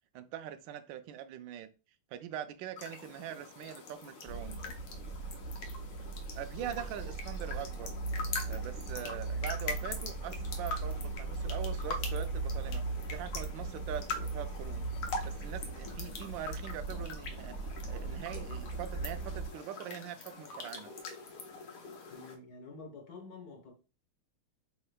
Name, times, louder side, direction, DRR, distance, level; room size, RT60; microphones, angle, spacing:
voice 1, 0.1-1.7 2.1-4.6 6.3-7.9 8.5-12.8 13.1-14.9 15.2-17.6 17.9-20.9, right 10 dB, 75° right, 1.1 m, -42 dB
sound 1, 2.8-22.4, left 4 dB, 80° left, 1.7 m, -44 dB
sound 2, 4.3-19.5, right 3 dB, 50° right, 2.5 m, -38 dB
voice 2, 6.6-7.1 9.0-9.5 22.1-23.7, left 3 dB, 50° left, 1.5 m, -49 dB
7.5 x 3.0 x 2.3 m
omnidirectional pair, 2.4 m